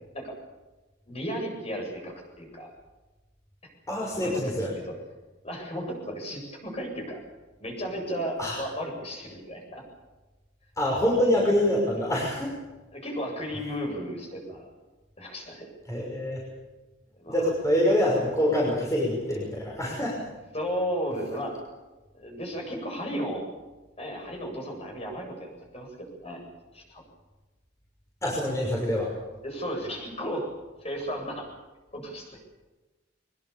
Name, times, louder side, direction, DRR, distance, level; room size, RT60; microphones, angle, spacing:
voice 1, 1.1-2.7 4.1-4.8 5.4-7.2 7.6-9.8 12.9-14.7 15.2-15.7 17.2-17.5 20.5-21.6 22.1-23.5 24.0-26.4 26.7-27.0 29.4-30.5 30.8-31.5 31.9-32.3, equal, 35° left, 1 dB, 8.0 m, -34 dB
voice 2, 3.9-4.7 8.4-8.6 10.8-12.5 15.9-16.4 17.3-20.3 28.2-29.1, left 1 dB, 15° left, -3 dB, 6.1 m, -25 dB
24.0 x 23.0 x 7.2 m, 1.2 s
head